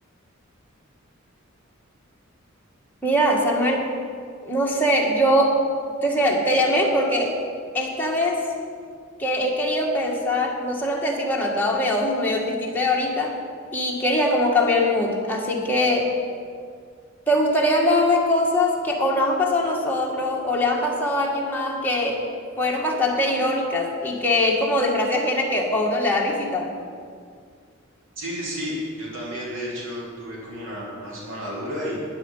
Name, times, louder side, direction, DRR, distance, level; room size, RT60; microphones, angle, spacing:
voice 1, 3.0-3.9 4.4-5.6 6.0-7.3 7.7-8.4 9.2-13.3 13.7-16.1 17.3-22.2 22.6-26.7, left 1 dB, 10° left, -2 dB, 1.8 m, -22 dB
voice 2, 28.2-32.0, equal, 65° right, -5 dB, 3.5 m, -32 dB
12.0 x 10.0 x 5.6 m, 2.2 s
head